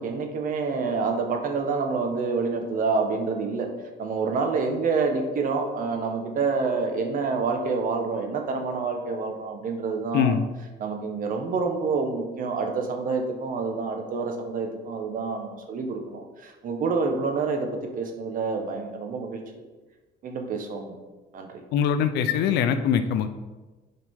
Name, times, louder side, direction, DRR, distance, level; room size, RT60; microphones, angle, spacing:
voice 1, 0.0-3.7 4.0-10.4 10.8-17.7 17.9-19.6 20.2-21.0 21.3-21.6, right 4 dB, 55° right, 3 dB, 1.2 m, -27 dB
voice 2, 21.7-23.3, left 8 dB, 80° left, 10 dB, 0.6 m, -22 dB
7.8 x 4.9 x 3.7 m, 1.2 s
cardioid pair, 110°, 17 cm